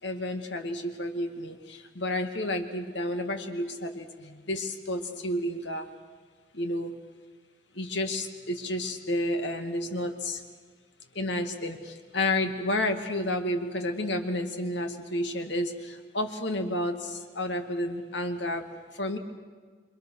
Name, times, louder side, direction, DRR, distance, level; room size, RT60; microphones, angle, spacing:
voice 1, 0.0-5.9 6.5-6.9 7.7-10.4 11.1-18.7 18.9-19.2, left 1 dB, 75° left, 6 dB, 2.3 m, -31 dB
28.5 x 24.5 x 6.6 m, 1.5 s
head